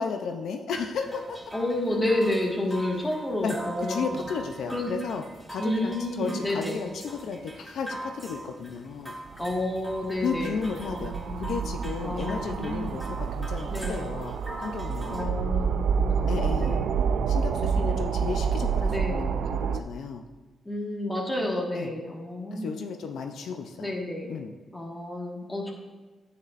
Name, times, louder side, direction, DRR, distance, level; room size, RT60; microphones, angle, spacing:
voice 1, 0.0-1.5 3.4-5.2 5.5-9.2 10.2-14.3 14.6-15.3 16.3-16.8 17.3-20.2 21.7-21.9 22.5-23.9 24.3-24.5, left 5 dB, 75° left, 5 dB, 0.6 m, -34 dB
sound 1, 0.7-15.2, right 1 dB, 5° right, 1.4 m, -41 dB
voice 2, 1.5-4.1 4.7-4.9 5.6-6.8 9.4-11.7 12.0-13.0 13.7-14.1 15.1-17.0 17.2-17.8 18.9-19.3 20.6-22.7 23.8-24.3 24.7-25.7, left 1 dB, 15° left, -1 dB, 1.7 m, -30 dB
sound 2, 9.3-19.8, right 6 dB, 75° right, 0.4 m, -28 dB
10.5 x 9.4 x 2.5 m, 1.3 s
cardioid pair, 115°, 0 cm